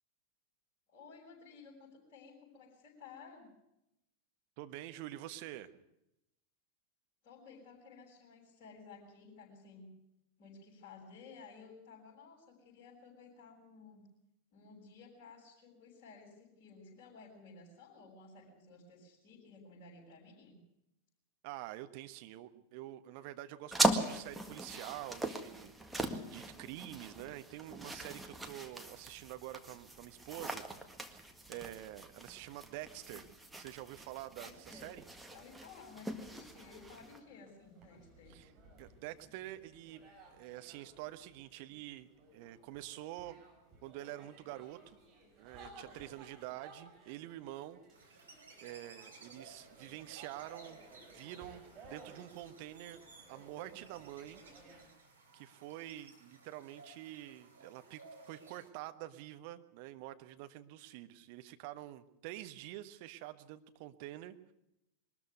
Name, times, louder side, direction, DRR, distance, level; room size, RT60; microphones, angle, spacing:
voice 1, 0.9-3.5 7.2-9.9 10.4-14.0 14.5-20.6 34.4-34.9 35.3-38.3, left 4 dB, 40° left, -7 dB, 6.2 m, -55 dB
voice 2, 4.6-5.7 21.4-30.6 31.0-33.3 33.6-35.0 38.3-38.5 38.8-40.1 40.3-43.4 43.8-45.0 45.4-48.3 48.6-50.8 51.1-53.0 53.3-54.4 55.3-64.5, right 14 dB, 45° right, 9 dB, 1.3 m, -47 dB
sound 1, 23.7-37.2, right 2 dB, 5° right, 1.8 m, -39 dB
sound 2, 36.1-54.9, right 3 dB, 30° right, 6.3 m, -59 dB
sound 3, 47.9-58.7, right 3 dB, 75° right, 3.7 m, -58 dB
22.0 x 13.5 x 9.4 m, 0.85 s
figure-of-eight pair, 90°, 0 cm